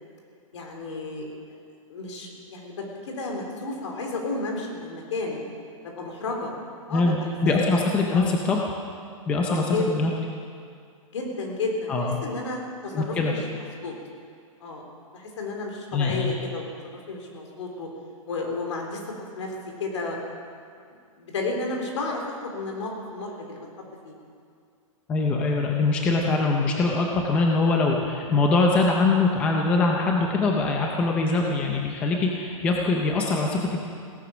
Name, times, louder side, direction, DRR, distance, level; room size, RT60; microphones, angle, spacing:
voice 1, 0.5-1.4 1.9-5.4 5.8-6.5 6.9-7.1 7.4-7.5 8.1-8.3 9.5-10.2 11.1-13.4 13.8-13.9 14.6-14.8 15.1-16.6 16.9-17.9 18.3-19.0 19.3-19.5 19.8-20.2 21.2-23.6 24.0-24.1, left 3 dB, 60° left, 0 dB, 3.7 m, -32 dB
voice 2, 6.9-8.6 9.3-10.1 11.9-12.2 12.9-13.3 15.9-16.3 25.1-33.9, left 3 dB, 5° left, 0 dB, 0.5 m, -23 dB
17.5 x 11.5 x 6.9 m, 2.3 s
hypercardioid pair, 180°, 18 cm